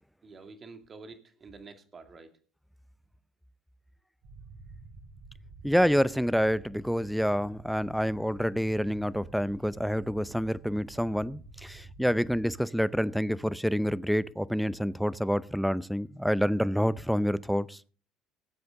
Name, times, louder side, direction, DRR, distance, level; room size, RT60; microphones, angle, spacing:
voice 1, 0.2-2.3, right 4 dB, 35° right, 2.4 m, -48 dB
sound 1, 4.2-12.5, right 3 dB, 65° right, 6.3 m, -50 dB
voice 2, 5.6-17.8, equal, ahead, 0.6 m, -28 dB
19.0 x 7.9 x 3.8 m
hypercardioid pair, 70°, 0 cm